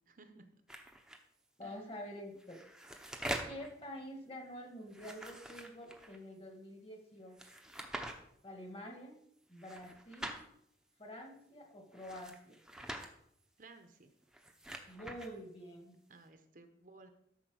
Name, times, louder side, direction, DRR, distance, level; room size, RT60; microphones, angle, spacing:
voice 1, 0.1-0.5 1.6-1.8 13.6-14.1 16.1-17.1, right 3 dB, 45° right, 7 dB, 0.8 m, -57 dB
sound 1, 0.7-1.2 2.3-3.7 4.9-6.2 7.4-8.1 9.6-10.4 11.9-13.1 14.2-15.3, right 1 dB, 5° right, 0.8 m, -44 dB
voice 2, 1.6-2.6 3.4-7.4 8.4-9.2 9.5-10.4 11.0-12.6 14.9-16.0, equal, 30° left, 2 dB, 1.7 m, -48 dB
13.0 x 4.4 x 6.2 m, 0.72 s
head